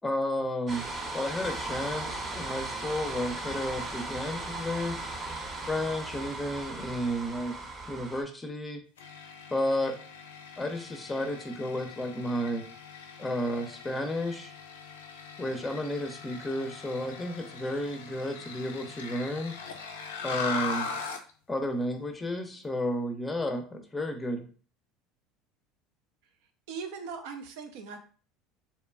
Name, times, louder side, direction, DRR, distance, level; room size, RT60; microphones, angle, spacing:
voice 1, 0.0-0.9 1.1-5.0 5.7-7.6 7.9-8.8 9.5-10.0 10.6-12.7 13.2-14.5 15.4-19.6 20.2-20.9 21.5-24.4, left 1 dB, 15° left, 5 dB, 0.5 m, -32 dB
sound 1, 0.7-8.2, right 2 dB, 35° right, 0.7 m, -37 dB
sound 2, 9.0-21.3, left 4 dB, 85° left, 0.3 m, -40 dB
voice 2, 26.7-28.0, right 5 dB, 70° right, 6 dB, 0.4 m, -39 dB
2.7 x 2.2 x 2.3 m, 0.40 s
hypercardioid pair, 75°, 0 cm